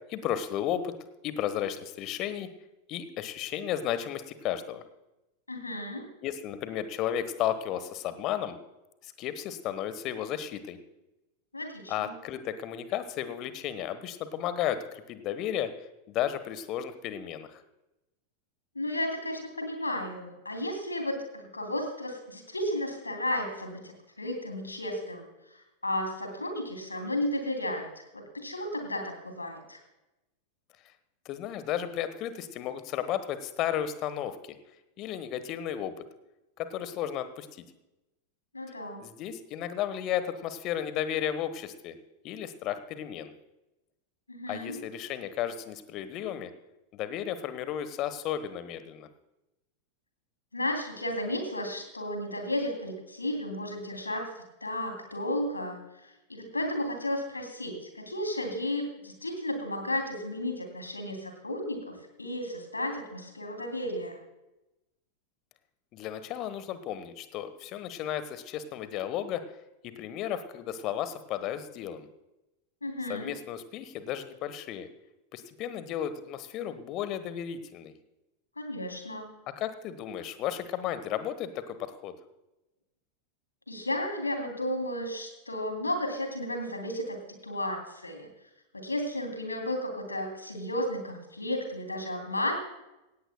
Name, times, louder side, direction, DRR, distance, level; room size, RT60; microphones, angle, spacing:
voice 1, 0.1-1.0 1.2-2.5 2.9-4.8 6.2-8.6 9.0-10.8 11.9-15.7 16.1-17.6 31.2-34.6 35.0-35.9 36.6-37.6 39.0-41.9 42.2-43.3 44.5-46.5 46.9-49.1 65.9-69.4 69.8-72.1 73.1-74.9 75.3-77.9 79.6-82.1, left 10 dB, 40° left, 12 dB, 1.1 m, -33 dB
voice 2, 5.5-6.1 11.5-12.1 18.7-25.2 25.8-29.8 38.5-39.0 44.3-44.8 50.5-54.3 54.6-55.8 56.3-64.2 72.8-73.3 78.6-79.3 83.7-87.2 87.4-88.3 88.7-92.6, left 1 dB, 80° left, 4 dB, 2.9 m, -33 dB
17.5 x 16.5 x 2.2 m, 0.96 s
figure-of-eight pair, 90°, 0 cm